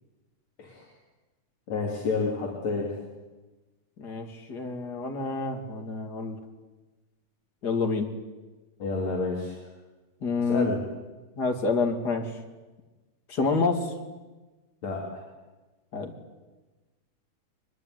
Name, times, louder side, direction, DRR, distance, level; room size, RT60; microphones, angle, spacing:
voice 1, 1.7-2.9 8.8-9.6 10.4-10.8 14.8-15.3, left 3 dB, 65° left, -1 dB, 4.2 m, -30 dB
voice 2, 4.0-6.4 7.6-8.1 10.2-10.7 11.4-12.3 13.3-13.9 15.9-16.1, left 4 dB, 35° left, 4 dB, 3.0 m, -28 dB
23.5 x 21.5 x 9.5 m, 1.2 s
omnidirectional pair, 3.3 m